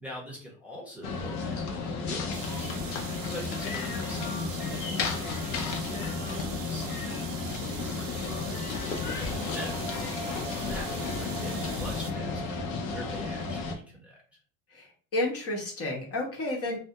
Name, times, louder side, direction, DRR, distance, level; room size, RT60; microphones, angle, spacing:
voice 1, 0.0-2.7 3.2-8.2 8.9-9.9 10.4-14.4, equal, 5° right, -4 dB, 0.8 m, -44 dB
sound 1, 1.0-13.8, left 4 dB, 60° left, 0.7 m, -33 dB
sound 2, 2.3-12.1, right 8 dB, 40° right, 0.4 m, -43 dB
voice 2, 14.7-16.8, left 1 dB, 40° left, -1 dB, 0.9 m, -31 dB
2.3 x 2.0 x 2.8 m, 0.41 s
supercardioid pair, 100°, 38 cm